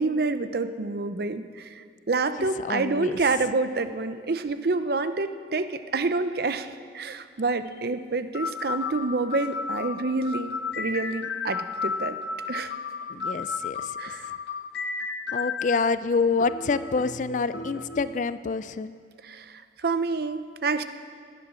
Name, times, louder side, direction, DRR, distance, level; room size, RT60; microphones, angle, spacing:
voice 1, 0.0-6.7 6.9-12.2 12.5-12.7 14.0-14.3 19.2-20.8, right 3 dB, 55° right, 11 dB, 0.6 m, -28 dB
voice 2, 2.6-3.2 13.1-14.0 15.3-19.0, left 4 dB, 45° left, 14 dB, 0.4 m, -27 dB
sound 1, 7.7-7.8 8.3-15.9 16.4-18.1, left 4 dB, 65° left, 0.8 m, -33 dB
16.5 x 10.5 x 6.2 m, 2.2 s
head